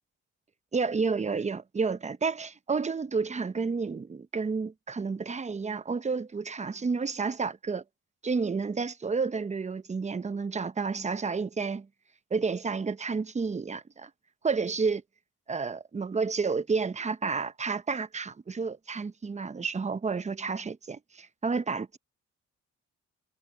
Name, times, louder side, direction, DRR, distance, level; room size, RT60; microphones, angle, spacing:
voice 1, 0.7-7.8 8.2-11.9 12.3-14.1 14.4-15.0 15.5-22.0, right 4 dB, 25° right, 0.8 m, -30 dB
cardioid pair, 90°, 30 cm